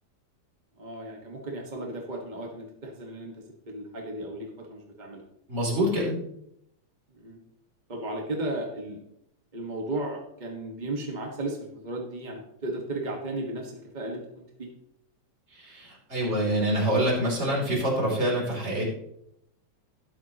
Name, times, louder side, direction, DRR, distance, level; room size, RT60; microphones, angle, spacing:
voice 1, 0.8-3.3 3.7-5.2 7.1-7.4 7.9-9.0 9.5-11.6 11.8-14.7, right 2 dB, 45° right, 0 dB, 0.5 m, -35 dB
voice 2, 5.5-6.1 15.5-18.8, right 1 dB, 20° right, -3 dB, 3.2 m, -26 dB
12.5 x 11.0 x 2.9 m, 0.77 s
omnidirectional pair, 3.4 m